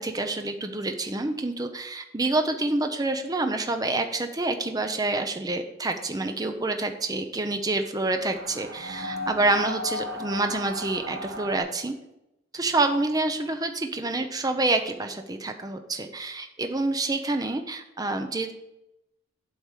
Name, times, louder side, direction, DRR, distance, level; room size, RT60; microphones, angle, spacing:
voice 1, 0.0-11.9 12.5-18.5, right 2 dB, 20° right, 6 dB, 0.6 m, -27 dB
sound 1, 8.0-11.6, left 1 dB, 50° right, 1.0 m, -35 dB
8.2 x 4.7 x 7.4 m, 0.88 s
head